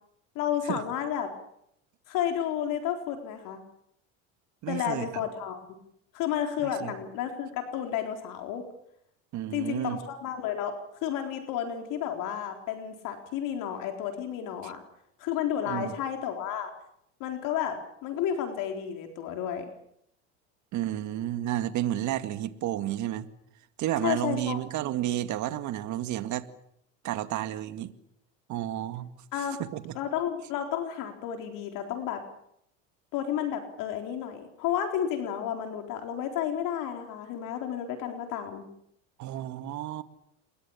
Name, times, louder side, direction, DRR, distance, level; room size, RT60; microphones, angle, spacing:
voice 1, 0.4-1.3 2.1-3.6 4.7-5.6 6.1-8.6 9.5-10.7 11.0-14.8 15.2-16.7 17.2-17.8 18.0-19.7 24.0-24.6 29.3-29.6 29.9-32.2 33.1-38.6, left 9 dB, 60° left, 4.1 m, -31 dB
voice 2, 4.6-5.2 6.6-6.9 9.3-10.0 14.6-14.7 15.7-15.9 20.7-23.3 23.8-26.5 27.0-27.9 28.5-29.1 29.7-30.0 39.2-40.0, right 13 dB, 50° right, 2.1 m, -31 dB
28.0 x 22.0 x 7.2 m
supercardioid pair, 100°, 36 cm